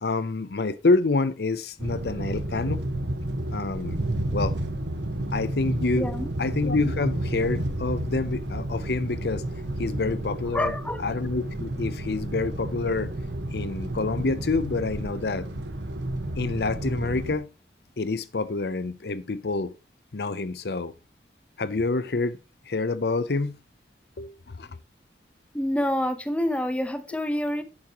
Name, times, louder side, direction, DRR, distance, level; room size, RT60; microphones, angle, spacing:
voice 1, 0.0-2.8 3.5-4.0 4.3-4.5 5.3-6.1 6.4-9.4 9.8-10.7 11.0-13.1 13.5-15.5 16.4-17.5 18.0-19.7 20.1-20.9 21.6-22.4 22.7-23.6 24.2-24.7, left 3 dB, 60° left, 0.6 m, -27 dB
sound 1, 1.8-17.4, right 1 dB, 80° right, 1.4 m, -31 dB
voice 2, 6.0-6.3 10.5-11.0 25.5-27.6, left 1 dB, 5° left, 0.9 m, -27 dB
10.5 x 8.6 x 3.0 m
head